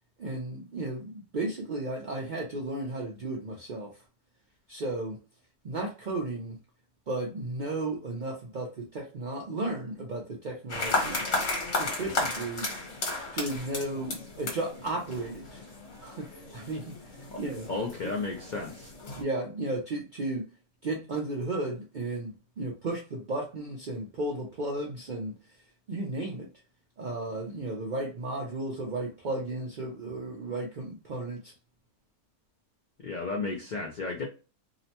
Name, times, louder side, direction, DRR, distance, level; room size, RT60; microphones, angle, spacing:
voice 1, 0.2-3.9 4.7-5.2 5.6-6.6 7.1-11.2 11.7-12.7 13.3-15.6 16.0-17.0 17.4-17.7 18.0-18.1 19.2-20.5 20.8-25.4 25.9-26.5 27.0-31.5, right 2 dB, 70° right, 0.4 m, -34 dB
sound 1, 10.7-19.2, left 2 dB, 60° left, 1.4 m, -34 dB
voice 2, 17.7-18.9 33.0-34.2, left 3 dB, 90° left, 0.4 m, -33 dB
2.9 x 2.1 x 2.7 m
omnidirectional pair, 1.5 m